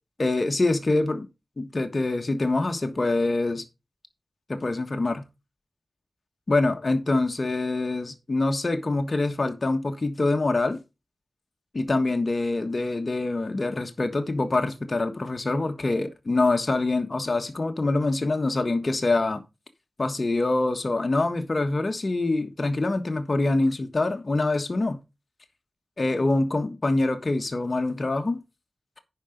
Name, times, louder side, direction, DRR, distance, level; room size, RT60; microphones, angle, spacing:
voice 1, 0.2-1.3 1.6-3.6 4.5-5.2 6.5-10.8 11.7-19.4 20.0-25.0 26.0-28.4, left 2 dB, 50° left, 1.4 m, -25 dB
10.5 x 5.0 x 5.2 m
cardioid pair, 40°, 0 cm